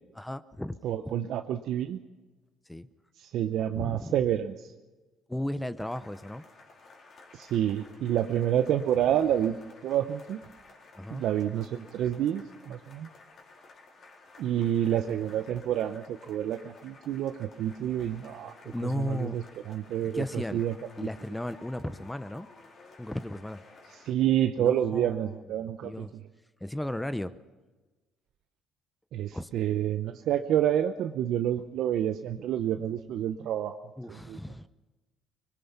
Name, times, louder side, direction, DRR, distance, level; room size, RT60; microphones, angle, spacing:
voice 1, 0.1-0.8 2.7-2.9 3.7-4.1 5.3-6.4 10.9-11.2 12.9-13.0 18.6-19.4 20.0-20.6 21.0-22.5 23.0-23.6 24.6-26.1 26.6-27.4 29.3-29.5 34.0-34.7, left 1 dB, 5° left, 14 dB, 0.6 m, -35 dB
voice 2, 0.8-2.0 3.2-4.7 7.3-9.6 9.8-10.4 11.1-13.1 14.4-18.5 18.8-20.2 20.5-20.7 24.0-26.1 29.1-33.8 34.1-34.4, right 10 dB, 60° right, 7 dB, 0.8 m, -28 dB
sound 1, 5.8-24.1, left 3 dB, 40° left, 4.2 m, -54 dB
24.5 x 21.0 x 5.8 m, 1.2 s
cardioid pair, 125°, 0 cm